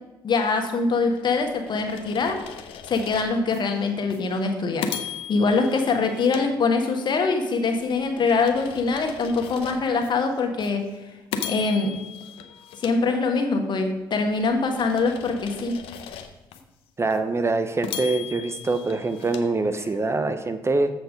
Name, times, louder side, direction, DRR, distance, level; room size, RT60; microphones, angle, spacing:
voice 1, 0.2-2.4 2.9-10.9 11.4-11.9 12.8-15.7, left 4 dB, 50° left, 4 dB, 1.4 m, -23 dB
sound 1, 1.2-3.6 4.1-4.3 4.8-7.2 7.7-10.1 10.6-10.8 11.3-13.7 14.2-16.6 17.1-17.2 17.8-20.2, left 8 dB, 75° left, 0.7 m, -38 dB
voice 2, 17.0-20.9, right 3 dB, 30° right, 9 dB, 0.7 m, -24 dB
7.3 x 5.9 x 5.1 m, 1.1 s
supercardioid pair, 55°, 10 cm